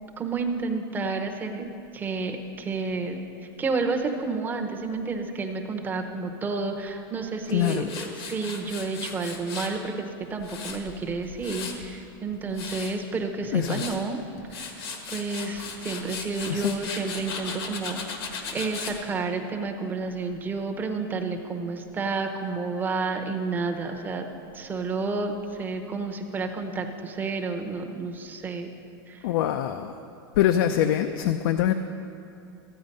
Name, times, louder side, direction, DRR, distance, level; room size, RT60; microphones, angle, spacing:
voice 1, 0.2-14.2 14.5-14.9 15.1-24.3 24.5-28.7 29.1-29.3, right 4 dB, 15° right, 3 dB, 0.8 m, -30 dB
voice 2, 7.5-7.9 13.5-13.8 16.5-16.8 29.2-29.9 30.4-31.7, left 11 dB, 70° left, 6 dB, 0.5 m, -24 dB
Tools, 7.6-9.8 10.2-11.9 12.3-12.9 13.4-14.0 14.4-19.0, left 5 dB, 85° left, 1.6 m, -37 dB
13.5 x 9.0 x 5.3 m, 2.7 s
supercardioid pair, 155°, 13 cm